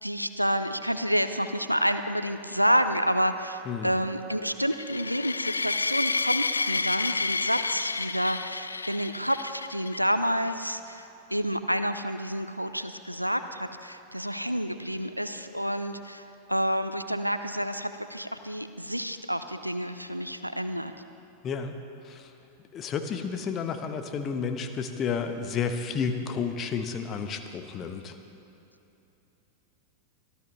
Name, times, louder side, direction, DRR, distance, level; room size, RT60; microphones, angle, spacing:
voice 1, 0.0-20.9, equal, 90° right, 10 dB, 0.6 m, -29 dB
sound 1, 4.7-10.0, left 3 dB, 80° left, 0.3 m, -30 dB
voice 2, 21.4-21.7 22.0-22.3 22.7-28.2, left 6 dB, 30° left, 8 dB, 1.1 m, -31 dB
24.0 x 14.5 x 3.2 m, 2.9 s
figure-of-eight pair, 90°, 0 cm